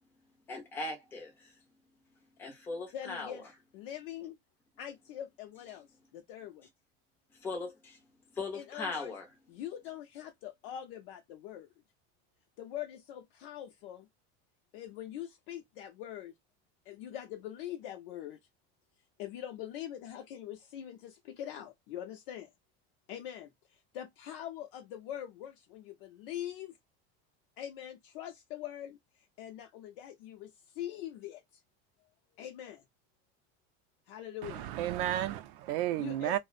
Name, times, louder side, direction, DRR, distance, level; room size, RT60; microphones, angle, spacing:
voice 1, 0.5-1.5 2.4-3.4 7.4-8.0 8.3-9.3, left 3 dB, 5° left, 0.4 m, -39 dB
voice 2, 2.9-3.4 3.7-4.4 4.8-5.9 6.1-6.7 8.5-9.1 9.5-11.7 12.6-14.1 14.7-16.3 16.9-18.4 19.2-22.5 23.1-26.8 27.6-29.0 29.4-31.6 32.4-32.8 34.1-34.7 36.0-36.4, left 11 dB, 60° left, 0.5 m, -43 dB
voice 3, 34.4-36.4, right 13 dB, 60° right, 0.4 m, -32 dB
2.4 x 2.0 x 2.4 m
cardioid pair, 180°, 31 cm